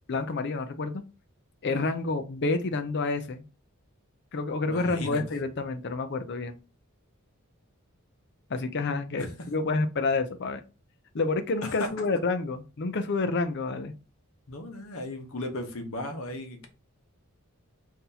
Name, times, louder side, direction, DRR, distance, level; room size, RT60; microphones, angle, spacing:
voice 1, 0.1-1.0 1.6-3.4 4.3-6.6 8.5-10.6 11.1-13.9, left 3 dB, 55° left, 9 dB, 0.5 m, -29 dB
voice 2, 4.6-5.3 9.1-9.3 11.6-11.9 14.5-16.7, left 2 dB, 70° left, 5 dB, 1.0 m, -36 dB
5.7 x 2.8 x 2.7 m, 0.32 s
head